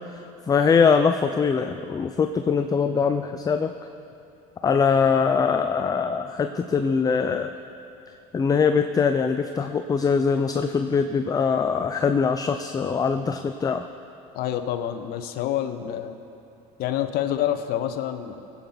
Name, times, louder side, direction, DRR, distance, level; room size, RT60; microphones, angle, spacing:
voice 1, 0.1-3.7 4.6-7.5 8.3-13.8, left 5 dB, 20° left, 7 dB, 0.5 m, -22 dB
voice 2, 14.3-16.2 16.8-18.5, left 11 dB, 60° left, 8 dB, 1.1 m, -27 dB
22.5 x 8.8 x 4.0 m, 2.7 s
supercardioid pair, 105°, 18 cm